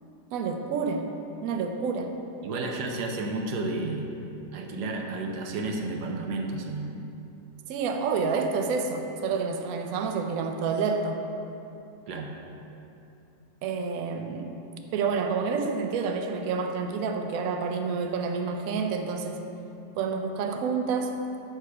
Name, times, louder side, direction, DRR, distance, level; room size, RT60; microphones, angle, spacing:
voice 1, 0.3-1.1 1.4-2.2 7.7-11.2 13.6-14.6 14.9-19.4 20.0-21.2, right 5 dB, 70° right, 4 dB, 1.0 m, -28 dB
voice 2, 2.4-4.1 4.5-6.9 12.1-12.3, right 2 dB, 90° right, 2 dB, 1.3 m, -31 dB
6.7 x 6.5 x 4.8 m, 2.8 s
omnidirectional pair, 1.7 m